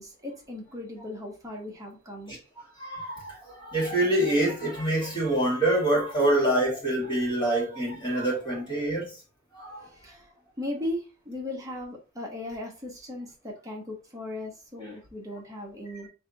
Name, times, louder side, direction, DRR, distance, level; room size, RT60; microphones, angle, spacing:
voice 1, 0.0-2.3 10.0-10.2 10.6-16.1, left 1 dB, 15° right, 1.3 m, -37 dB
voice 2, 2.3-9.2 9.5-9.9, right 1 dB, 20° left, 2.2 m, -26 dB
3.4 x 3.4 x 4.0 m
head